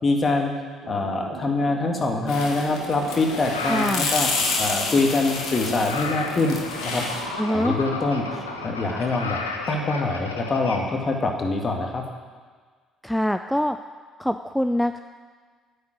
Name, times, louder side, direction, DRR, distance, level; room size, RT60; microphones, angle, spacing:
voice 1, 0.0-0.5 0.9-4.3 4.6-6.6 6.8-7.0 7.5-9.4 9.7-12.0, left 3 dB, 35° left, 2 dB, 2.0 m, -24 dB
Thunder, 0.8-10.1, right 8 dB, 70° right, 0.9 m, -41 dB
sound 1, 2.3-7.2, left 4 dB, 65° left, 1.8 m, -29 dB
sound 2, 2.8-10.8, left 4 dB, 85° left, 0.9 m, -33 dB
voice 2, 3.7-4.1 7.4-7.8 13.0-13.8 14.2-15.0, equal, ahead, 8 dB, 0.4 m, -24 dB
9.5 x 7.2 x 9.1 m, 1.5 s
figure-of-eight pair, 50°, 0 cm